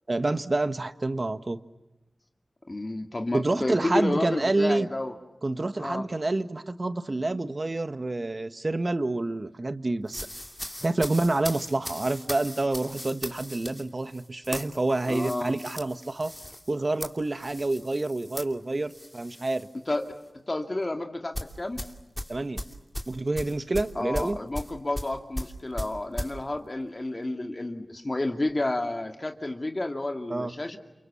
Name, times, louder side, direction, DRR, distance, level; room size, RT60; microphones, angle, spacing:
voice 1, 0.1-1.6 3.3-4.9 5.4-10.3 10.8-16.3 16.7-19.7 22.3-22.6 23.1-24.4 30.3-30.5, right 2 dB, 45° right, 11 dB, 1.5 m, -28 dB
voice 2, 2.7-5.1 5.8-6.1 15.1-15.5 19.9-20.0 20.5-21.8 23.9-30.8, left 2 dB, 35° left, 5 dB, 2.5 m, -30 dB
sound 1, 10.1-19.7 20.0-20.3 21.3-26.3, equal, 10° left, 2.8 m, -38 dB
29.5 x 27.0 x 7.2 m, 1.0 s
wide cardioid pair, 55°, 0 cm